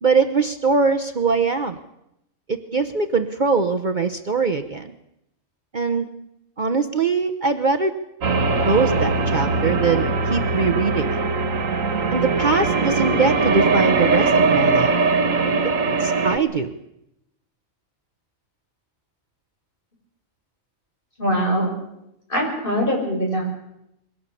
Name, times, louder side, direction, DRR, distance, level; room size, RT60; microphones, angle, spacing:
voice 1, 0.0-1.8 2.5-4.9 5.7-6.1 6.6-7.9 8.6-11.2 12.1-15.0 15.6-15.7 16.0-16.7, right 4 dB, 40° right, 5 dB, 1.0 m, -22 dB
sound 1, 8.2-16.4, right 3 dB, 90° right, 1.8 m, -20 dB
voice 2, 21.2-21.8 22.3-23.6, equal, 40° left, 0 dB, 7.0 m, -22 dB
22.0 x 18.0 x 8.4 m, 0.83 s
omnidirectional pair, 1.3 m